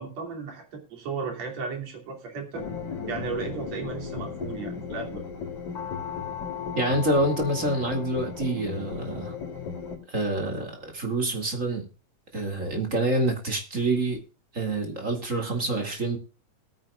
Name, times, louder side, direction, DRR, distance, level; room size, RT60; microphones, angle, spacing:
voice 1, 0.0-2.6 3.1-5.2, right 4 dB, 65° right, 2 dB, 4.0 m, -35 dB
sound 1, 2.5-10.0, left 6 dB, 75° left, 4.5 m, -35 dB
voice 2, 6.7-9.3 10.1-11.8 12.3-14.2 14.5-16.2, right 2 dB, 25° right, 3 dB, 2.5 m, -27 dB
20.5 x 9.5 x 2.4 m, 0.32 s
omnidirectional pair, 3.3 m